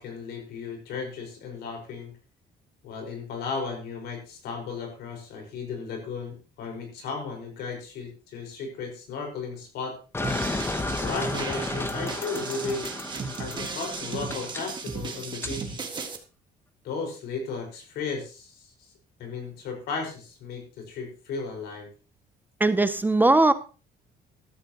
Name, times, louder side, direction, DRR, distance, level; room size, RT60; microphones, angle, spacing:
voice 1, 0.0-2.1 2.8-10.0 11.0-12.9 13.4-15.8 16.8-18.9 19.2-21.9, left 4 dB, 80° left, 2 dB, 5.0 m, -35 dB
sound 1, 10.1-15.5, left 2 dB, 15° left, 0.9 m, -33 dB
sound 2, 10.2-16.2, right 4 dB, 25° right, 1.8 m, -35 dB
voice 2, 22.6-23.5, right 2 dB, 10° right, 12 dB, 0.6 m, -19 dB
14.5 x 13.0 x 3.0 m, 0.34 s
cardioid pair, 150°, 17 cm